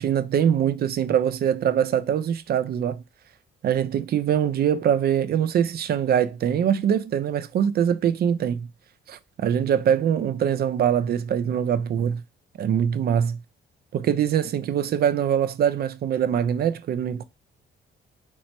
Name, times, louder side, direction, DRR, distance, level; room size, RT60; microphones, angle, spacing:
voice 1, 0.0-3.0 3.6-8.7 9.1-12.2 12.6-13.4 13.9-17.2, right 9 dB, 50° right, 0.4 m, -23 dB
3.2 x 2.1 x 4.2 m
cardioid pair, 90°, 20 cm